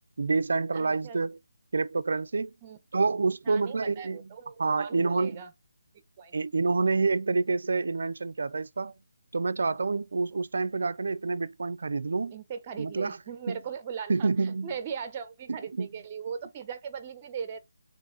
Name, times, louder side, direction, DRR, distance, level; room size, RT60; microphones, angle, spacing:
voice 1, 0.2-1.4 1.7-2.5 2.9-4.2 4.6-5.4 6.3-8.9 9.3-12.3 12.8-13.2 13.5-13.6 14.1-14.7 15.8-15.9, right 4 dB, 65° right, 0.5 m, -27 dB
voice 2, 0.7-1.2 2.6-2.8 3.4-5.5 6.2-6.4 10.3-10.4 12.3-17.6, right 7 dB, 20° right, 0.9 m, -39 dB
8.2 x 3.2 x 3.9 m
hypercardioid pair, 170°, 0 cm